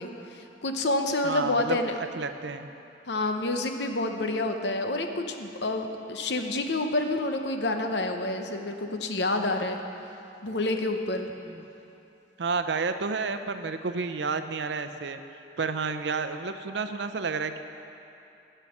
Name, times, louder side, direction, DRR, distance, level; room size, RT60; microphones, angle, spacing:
voice 1, 0.0-2.0 3.1-9.8 10.4-11.3, left 2 dB, 75° left, 5 dB, 0.9 m, -28 dB
voice 2, 1.2-2.7 11.5-11.6 12.4-15.2 15.6-17.6, right 4 dB, 80° right, 9 dB, 0.6 m, -31 dB
15.5 x 5.6 x 7.1 m, 2.8 s
head